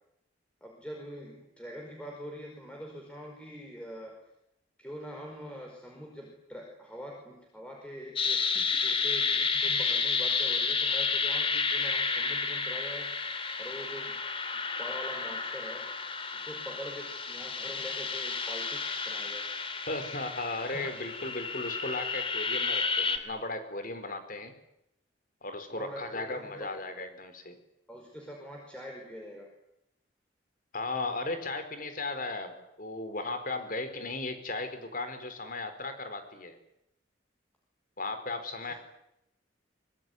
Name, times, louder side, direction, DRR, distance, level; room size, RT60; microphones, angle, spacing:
voice 1, 0.6-4.2 4.8-8.4 8.8-13.1 13.6-14.2 14.8-15.9 16.3-19.5 20.7-21.0 25.7-26.7 27.9-29.5 33.5-33.7 38.6-38.7, equal, 5° left, 0 dB, 5.0 m, -44 dB
sound 1, 8.2-23.2, left 4 dB, 30° left, 2.8 m, -31 dB
voice 2, 19.9-24.5 25.4-27.6 30.7-36.6 38.0-38.7, left 2 dB, 45° left, 9 dB, 4.9 m, -36 dB
25.0 x 23.0 x 9.6 m, 0.81 s
head